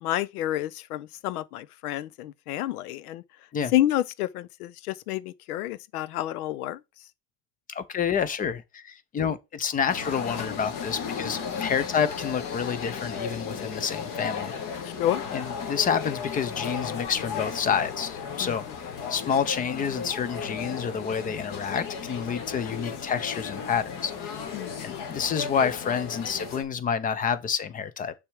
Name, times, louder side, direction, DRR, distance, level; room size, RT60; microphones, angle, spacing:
voice 1, 0.0-3.2 3.7-6.8 14.8-15.2 18.4-18.5 24.5-25.0, left 13 dB, 70° left, 0.6 m, -29 dB
voice 2, 7.7-14.9 15.3-18.6 19.1-24.5 24.8-28.1, left 7 dB, 20° left, 0.5 m, -29 dB
sound 1, 9.9-26.6, left 6 dB, 45° left, 1.7 m, -35 dB
6.9 x 3.5 x 4.7 m
hypercardioid pair, 105°, 46 cm